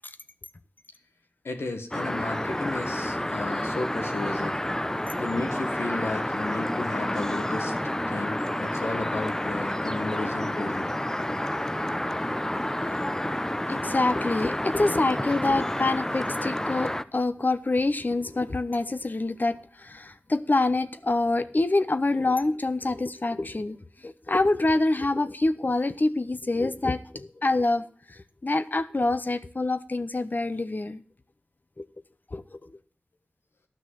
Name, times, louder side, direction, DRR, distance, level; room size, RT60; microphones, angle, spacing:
voice 1, 1.4-4.6 5.2-10.9, left 2 dB, 90° left, 1.5 m, -34 dB
sound 1, 1.9-17.0, left 1 dB, 15° left, 0.6 m, -29 dB
voice 2, 13.7-23.8 24.0-31.0 31.8-31.9 32.3-32.8, left 2 dB, 50° left, 0.8 m, -26 dB
10.5 x 6.2 x 7.7 m
cardioid pair, 40°, 4 cm